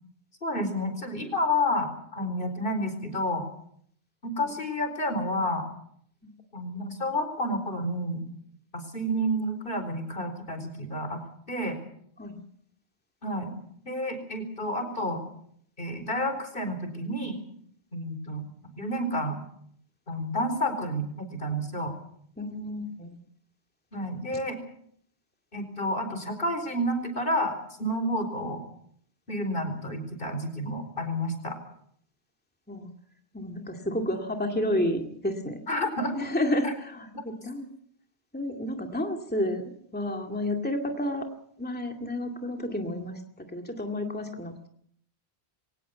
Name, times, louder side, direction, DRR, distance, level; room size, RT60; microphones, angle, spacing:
voice 1, 0.4-3.5 4.2-5.6 6.5-8.2 8.7-11.2 11.5-11.8 13.2-13.5 13.8-15.2 15.8-17.4 17.9-18.5 18.8-19.4 20.1-21.9 23.9-24.6 25.5-28.6 29.3-31.6 35.7-36.2 36.6-36.7 37.1-37.2, equal, 55° left, 7 dB, 4.7 m, -30 dB
voice 2, 22.4-23.2 32.7-32.9 33.3-35.6 36.1-37.7 38.3-41.3 41.6-43.2 43.5-44.7, left 1 dB, 10° left, 3 dB, 2.3 m, -31 dB
23.5 x 19.0 x 7.0 m, 0.66 s
omnidirectional pair, 1.1 m